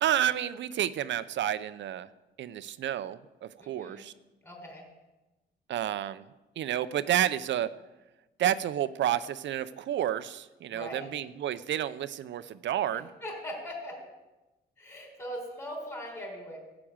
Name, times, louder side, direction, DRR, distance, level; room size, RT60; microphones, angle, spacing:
voice 1, 0.0-2.1 2.4-4.1 5.7-6.2 6.6-7.7 8.4-13.1, right 11 dB, 70° right, 14 dB, 0.6 m, -30 dB
voice 2, 3.6-4.1 4.4-4.9 10.7-11.2 12.9-14.0 14.8-16.6, equal, 10° left, 0 dB, 4.1 m, -40 dB
12.5 x 6.1 x 8.7 m, 1.1 s
cardioid pair, 90°, 20 cm